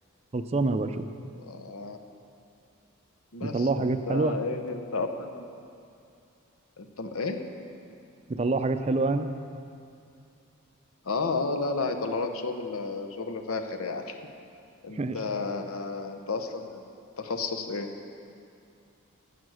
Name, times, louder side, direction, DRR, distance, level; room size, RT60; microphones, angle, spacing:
voice 1, 0.3-1.0 3.4-4.3 8.3-9.3 14.9-15.2, right 3 dB, 30° right, 9 dB, 0.4 m, -26 dB
voice 2, 1.4-2.0 3.3-5.5 6.8-7.4 11.0-14.2 14.8-16.8 17.2-17.9, left 3 dB, 85° left, 6 dB, 0.9 m, -32 dB
11.0 x 8.1 x 6.3 m, 2.5 s
head